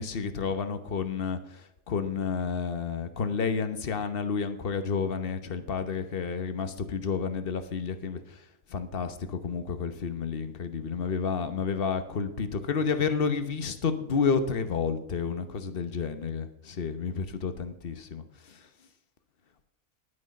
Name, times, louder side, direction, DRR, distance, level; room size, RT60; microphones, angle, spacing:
voice 1, 0.0-1.6 1.9-8.2 8.7-18.6, left 5 dB, 45° left, 9 dB, 1.1 m, -30 dB
11.0 x 9.7 x 5.4 m, 0.84 s
omnidirectional pair, 1.5 m